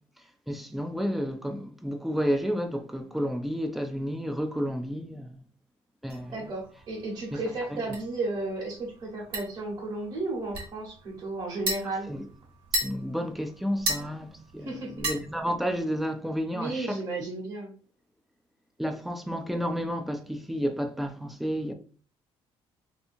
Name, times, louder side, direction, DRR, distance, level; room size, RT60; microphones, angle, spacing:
voice 1, 0.5-5.4 6.0-6.3 7.3-7.4 7.7-7.8 12.1-12.2 12.8-17.0 18.8-21.7, equal, ahead, 0.3 m, -31 dB
sound 1, 6.1-15.8, right 1 dB, 60° right, 1.2 m, -37 dB
voice 2, 6.3-12.1 14.6-15.0 16.5-17.7, right 2 dB, 40° right, 1.2 m, -33 dB
3.3 x 2.8 x 2.6 m
cardioid pair, 155°, 10 cm